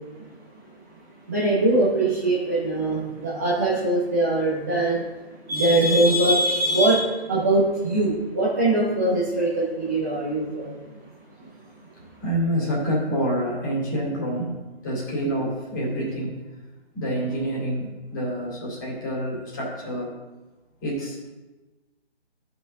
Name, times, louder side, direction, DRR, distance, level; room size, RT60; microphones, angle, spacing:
voice 1, 1.3-5.0 5.5-10.7, right 2 dB, 15° right, -7 dB, 0.8 m, -22 dB
voice 2, 12.2-16.4 16.9-20.2 20.8-21.2, right 1 dB, 20° left, -5 dB, 2.5 m, -27 dB
12.0 x 5.8 x 3.6 m, 1.2 s
figure-of-eight pair, 165°, 33 cm